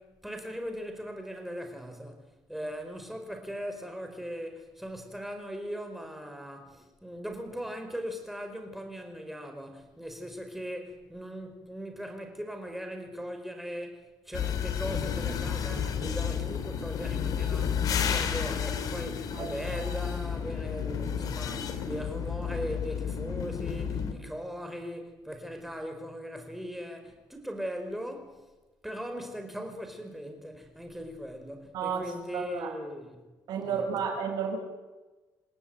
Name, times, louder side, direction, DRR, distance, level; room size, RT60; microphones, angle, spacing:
voice 1, 0.0-28.4 28.8-33.2 33.5-33.9, equal, 5° right, 5.1 m, -39 dB
sound 1, 14.3-24.1, left 7 dB, 60° left, 3.2 m, -31 dB
voice 2, 19.3-19.9 31.7-32.8 33.5-34.6, right 6 dB, 70° right, 6.6 m, -33 dB
28.5 x 18.0 x 9.4 m
cardioid pair, 135°, 7 cm